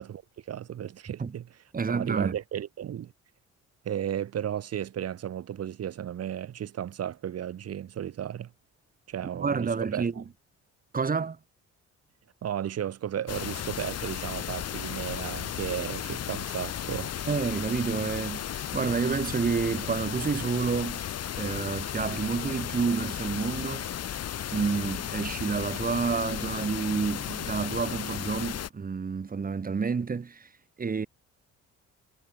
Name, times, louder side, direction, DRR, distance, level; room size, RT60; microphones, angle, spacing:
voice 1, 0.0-1.5 1.9-3.1 3.8-8.5 9.1-10.1 12.4-17.1, right 10 dB, 55° right, 1.1 m, -34 dB
voice 2, 1.7-2.3 9.4-10.2 10.9-11.4 17.3-21.0 21.4-23.9 24.5-30.5 30.8-31.1, right 5 dB, 30° right, 1.4 m, -29 dB
sound 1, 13.3-28.7, left 10 dB, 55° left, 1.4 m, -35 dB
cardioid pair, 90°, 30 cm